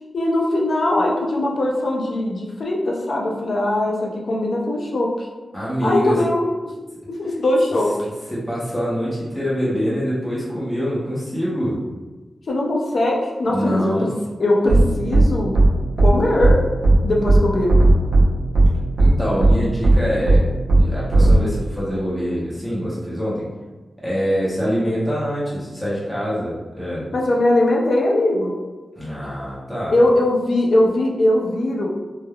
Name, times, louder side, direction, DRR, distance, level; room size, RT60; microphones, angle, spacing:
voice 1, 0.1-5.3 5.8-6.4 7.2-8.1 12.5-14.1 14.4-15.6 16.0-16.6 17.0-17.8 27.1-28.5 29.9-31.9, left 1 dB, 60° left, -2 dB, 0.5 m, -20 dB
voice 2, 5.5-6.2 8.3-11.8 13.5-14.1 19.0-20.5 20.8-23.5 24.0-27.1 29.0-30.0, equal, 5° left, -9 dB, 0.7 m, -24 dB
sound 1, 14.7-14.8 15.1-15.2 15.5-15.7 16.0-16.1 16.4-16.5 16.8-17.0 17.3-17.4 17.7-18.2 18.5-18.7 19.0-19.1 19.4-19.5 19.8-20.0 20.3-20.4 20.7-20.8 21.1-21.3, right 2 dB, 75° right, 0.6 m, -13 dB
3.3 x 2.1 x 2.2 m, 1.3 s
wide cardioid pair, 120°, 0 cm